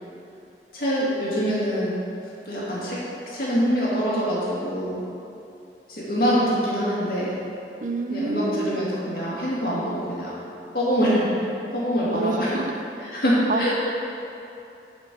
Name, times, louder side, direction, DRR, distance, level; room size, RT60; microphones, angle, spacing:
voice 1, 0.7-1.9 2.5-5.0 5.9-7.4 8.1-10.4 10.7-11.3 11.7-12.6 13.1-13.7, equal, 55° left, -8 dB, 2.1 m, -24 dB
voice 2, 7.8-8.8 12.1-12.7 13.5-13.7, right 3 dB, 45° right, 6 dB, 0.5 m, -27 dB
10.5 x 4.4 x 5.2 m, 2.7 s
head